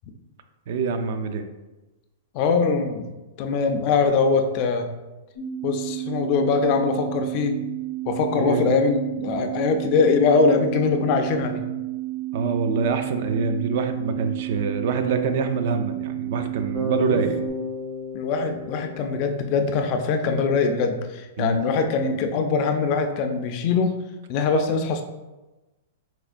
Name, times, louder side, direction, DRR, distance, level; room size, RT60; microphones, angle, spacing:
voice 1, 0.7-1.4 8.4-8.7 12.3-17.3 21.4-21.6, right 5 dB, 55° right, 7 dB, 0.3 m, -25 dB
voice 2, 2.3-3.1 3.4-4.9 5.6-7.5 8.1-11.7 17.1-17.2 18.1-24.0 24.3-25.0, left 4 dB, 40° left, 6 dB, 0.3 m, -22 dB
sound 1, 5.4-17.5, right 16 dB, 70° left, 0.7 m, -31 dB
Bass guitar, 16.7-20.7, left 1 dB, 70° right, 1.4 m, -34 dB
4.3 x 2.1 x 2.5 m, 1.1 s
hypercardioid pair, 150°, 0 cm